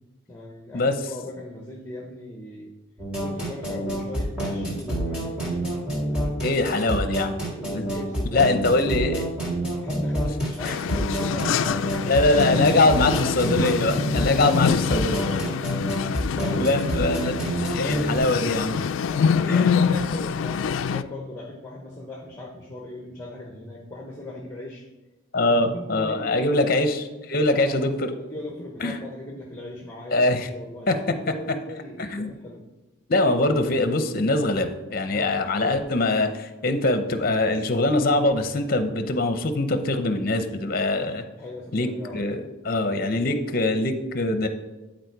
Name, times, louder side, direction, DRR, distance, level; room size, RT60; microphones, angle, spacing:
voice 1, 0.3-2.7 3.2-6.8 7.5-9.2 9.8-12.6 14.3-16.0 16.3-17.0 19.1-24.9 25.4-26.9 27.3-32.6 35.1-35.4 41.3-42.2, left 1 dB, 10° left, -2 dB, 0.8 m, -38 dB
sound 1, 3.0-18.2, right 1 dB, 5° right, 2.1 m, -28 dB
voice 2, 6.4-7.3 8.3-9.3 10.6-10.7 12.0-15.2 16.5-17.3 17.6-18.8 19.5-19.7 25.3-27.0 27.3-27.9 28.8-28.9 30.1-30.5 30.9-31.0 32.0-32.3 33.1-41.2 41.7-44.5, left 2 dB, 45° left, 8 dB, 0.7 m, -23 dB
sound 2, 10.6-21.0, left 6 dB, 70° left, 0.3 m, -25 dB
11.0 x 4.3 x 4.6 m, 1.1 s
head